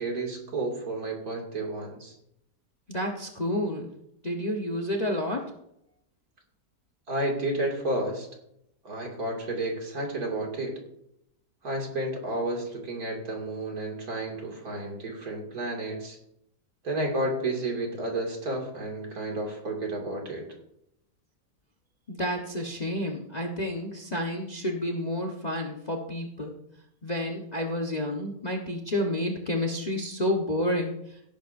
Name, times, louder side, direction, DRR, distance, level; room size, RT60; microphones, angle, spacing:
voice 1, 0.0-2.1 7.1-8.3 8.8-10.7 11.6-16.2 16.8-20.5, right 2 dB, 60° right, 0 dB, 2.7 m, -31 dB
voice 2, 2.9-3.9 4.2-5.4 22.1-26.6 27.0-30.9, left 1 dB, 30° left, 3 dB, 1.0 m, -30 dB
17.0 x 10.0 x 2.6 m, 0.79 s
omnidirectional pair, 1.8 m